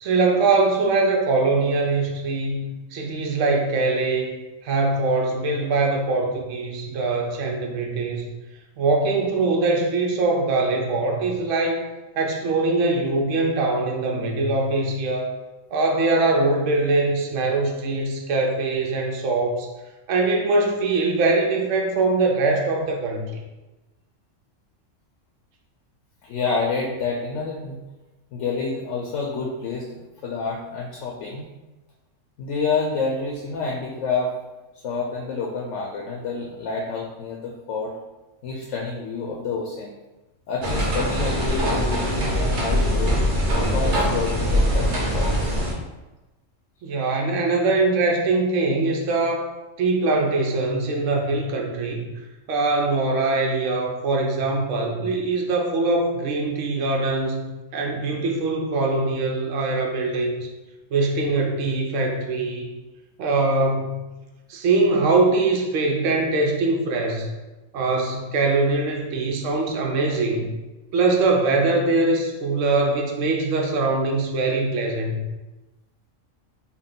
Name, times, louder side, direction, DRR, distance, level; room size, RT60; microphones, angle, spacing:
voice 1, 0.0-4.3 4.6-8.3 8.8-11.8 12.2-15.3 15.7-19.7 20.1-23.4 46.8-49.5 49.8-52.1 52.5-60.3 60.9-62.7 63.2-64.1 64.5-67.3 67.7-70.5 70.9-75.3, right 3 dB, 75° right, 1 dB, 1.0 m, -22 dB
voice 2, 26.2-27.8 28.3-29.9 30.2-31.5 32.4-34.3 34.8-37.9 38.4-39.9 40.5-43.2 43.7-45.6, left 4 dB, 70° left, 0 dB, 0.9 m, -28 dB
sound 1, 40.6-45.7, equal, 45° right, 0.9 m, -22 dB
3.7 x 2.3 x 3.7 m, 1.1 s
omnidirectional pair, 1.3 m